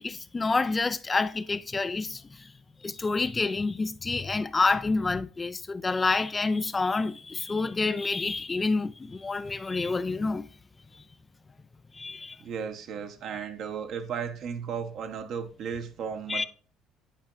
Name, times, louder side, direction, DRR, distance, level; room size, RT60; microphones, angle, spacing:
voice 1, 0.0-2.5 2.8-10.5 10.9-11.0 11.9-12.4 16.3-16.4, left 3 dB, 25° left, 0.3 m, -28 dB
voice 2, 12.4-16.5, right 7 dB, 60° right, 0.9 m, -35 dB
8.8 x 5.1 x 2.5 m
supercardioid pair, 75°, 0 cm